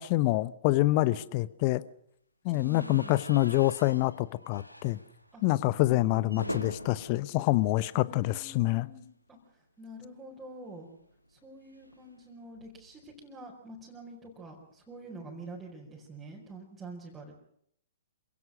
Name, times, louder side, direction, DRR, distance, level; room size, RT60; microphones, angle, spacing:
voice 1, 0.0-1.8 2.4-5.0 5.4-8.9, left 18 dB, 35° left, 0.9 m, -26 dB
sound 1, 2.5-8.6 8.9-9.1 9.3-9.4 10.7-13.0, equal, 90° left, 1.8 m, -45 dB
voice 2, 2.5-3.2 5.3-5.4 5.9-6.7 7.9-9.4 9.8-10.9 11.3-17.3, right 1 dB, 10° right, 4.9 m, -46 dB
27.0 x 17.0 x 6.5 m
figure-of-eight pair, 115°, 0 cm